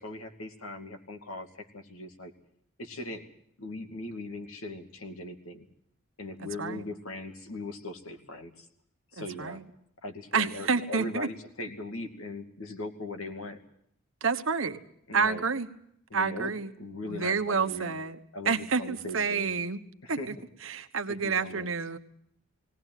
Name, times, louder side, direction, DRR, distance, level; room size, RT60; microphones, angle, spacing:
voice 1, 0.0-2.3 2.8-3.3 3.6-5.7 6.2-8.7 9.1-9.6 10.0-13.6 15.1-15.4 16.1-16.5 16.8-17.9 18.3-19.5 20.0-20.3 21.1-21.7, left 2 dB, 90° left, 5 dB, 2.4 m, -39 dB
voice 2, 6.4-6.8 9.2-9.6 10.3-11.3 14.2-14.8 15.1-15.7 16.1-16.7 17.1-18.2 18.4-19.8 20.1-20.4 20.6-22.0, right 5 dB, 70° right, 8 dB, 1.3 m, -29 dB
19.0 x 18.0 x 9.2 m, 0.71 s
head